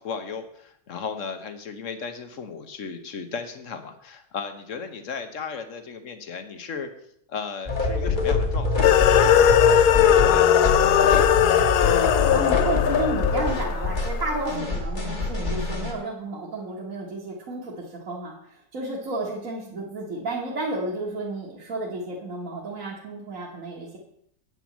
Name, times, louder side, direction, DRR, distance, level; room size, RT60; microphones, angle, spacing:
voice 1, 0.0-6.9 7.3-11.4, left 5 dB, 50° left, 8 dB, 1.2 m, -35 dB
sound 1, 7.7-15.9, left 3 dB, 30° left, 1.6 m, -25 dB
sound 2, 8.8-14.3, left 10 dB, 70° left, 1.1 m, -19 dB
voice 2, 12.3-24.0, right 2 dB, 50° right, -4 dB, 1.9 m, -32 dB
8.7 x 6.2 x 7.3 m, 0.72 s
omnidirectional pair, 1.9 m